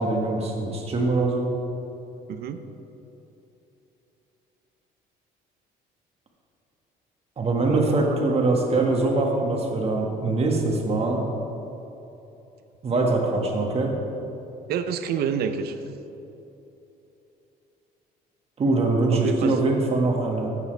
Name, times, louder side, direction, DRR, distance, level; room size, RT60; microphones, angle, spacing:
voice 1, 0.0-1.5 7.4-11.2 12.8-14.0 18.6-20.5, right 2 dB, 35° right, 0 dB, 1.8 m, -23 dB
voice 2, 2.3-2.6 7.7-8.1 14.7-15.8 19.1-19.7, right 7 dB, 65° right, 9 dB, 0.7 m, -28 dB
15.5 x 8.5 x 3.5 m, 3.0 s
cardioid pair, 110°, 17 cm